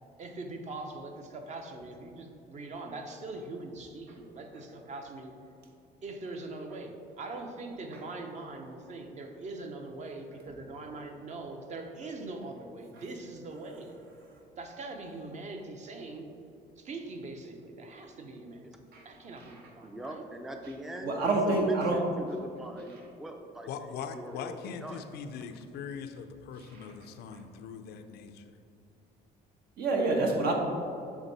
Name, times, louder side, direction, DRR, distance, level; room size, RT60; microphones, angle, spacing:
voice 1, 0.2-5.5 6.0-14.0 14.6-16.4 16.8-18.7 19.0-20.2, right 2 dB, 45° right, 4 dB, 0.8 m, -42 dB
voice 2, 19.8-25.0, right 1 dB, ahead, 4 dB, 0.4 m, -42 dB
voice 3, 21.0-22.1 22.9-23.0 26.5-27.0 29.8-30.5, right 2 dB, 70° right, 1 dB, 1.1 m, -28 dB
voice 4, 23.7-28.5, left 6 dB, 75° left, 8 dB, 0.5 m, -41 dB
7.1 x 3.6 x 4.1 m, 2.6 s
cardioid pair, 110°, 17 cm